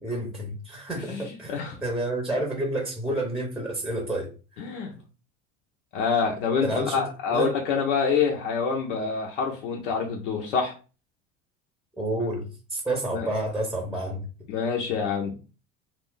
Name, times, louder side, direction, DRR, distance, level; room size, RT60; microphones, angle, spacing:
voice 1, 0.0-4.3 6.6-7.5 12.0-14.3, right 1 dB, ahead, 1 dB, 0.7 m, -30 dB
voice 2, 1.1-1.8 4.6-4.9 5.9-10.7 13.1-13.3 14.5-15.3, left 5 dB, 80° left, 0 dB, 0.7 m, -26 dB
2.4 x 2.0 x 3.7 m, 0.34 s
hypercardioid pair, 85°, 36 cm